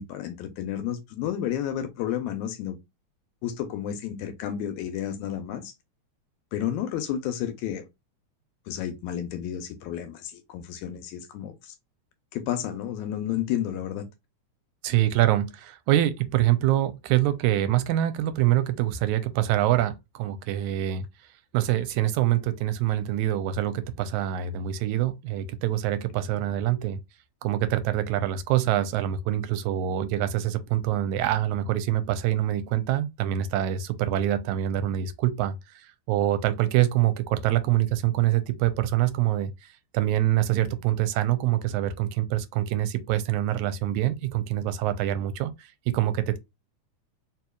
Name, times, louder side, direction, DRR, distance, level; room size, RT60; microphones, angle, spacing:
voice 1, 0.0-2.8 3.4-5.7 6.5-7.8 8.7-11.7 12.3-14.1, left 10 dB, 85° left, 2.0 m, -31 dB
voice 2, 14.8-21.1 21.5-27.0 27.4-39.5 39.9-46.4, right 13 dB, 85° right, 2.0 m, -25 dB
4.5 x 2.8 x 2.3 m
omnidirectional pair, 3.4 m